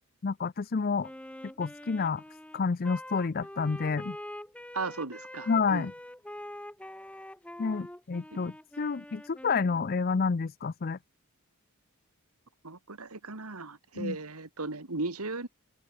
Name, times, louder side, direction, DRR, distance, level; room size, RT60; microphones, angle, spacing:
voice 1, 0.2-1.1 1.6-2.2 2.5-4.2 5.5-5.9 7.6-11.0 14.0-14.2, left 5 dB, 40° left, 0.5 m, -29 dB
Wind instrument woodwind instrument, 1.0-10.0, left 1 dB, 5° left, 1.0 m, -45 dB
voice 2, 4.7-5.9 12.6-15.5, right 3 dB, 80° right, 2.2 m, -36 dB
head